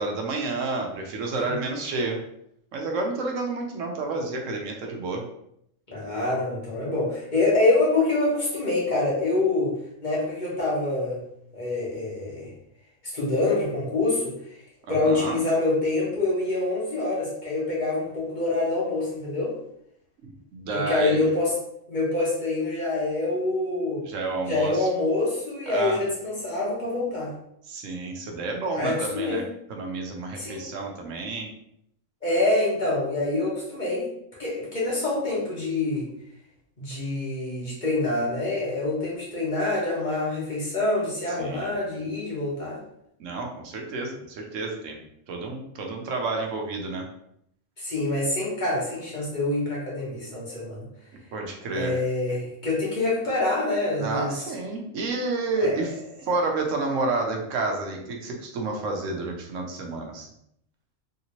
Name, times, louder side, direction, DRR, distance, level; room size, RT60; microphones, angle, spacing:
voice 1, 0.0-2.2 2.7-5.2 14.9-15.4 20.5-21.3 24.0-24.9 25.7-26.0 27.7-29.4 29.7-31.5 41.4-41.7 43.2-45.0 45.3-47.0 51.3-52.0 54.0-55.9 56.2-60.3, right 3 dB, 75° right, 2 dB, 1.0 m, -30 dB
voice 2, 5.9-9.7 10.0-11.2 11.5-12.5 13.0-14.3 14.9-19.5 20.7-21.5 21.9-24.0 24.5-27.3 28.7-29.4 30.4-30.6 32.2-34.1 34.4-36.1 36.8-42.8 47.8-50.8 51.7-54.3 55.6-55.7, left 2 dB, 40° left, -6 dB, 1.2 m, -26 dB
3.3 x 2.8 x 2.9 m, 0.73 s
omnidirectional pair, 1.3 m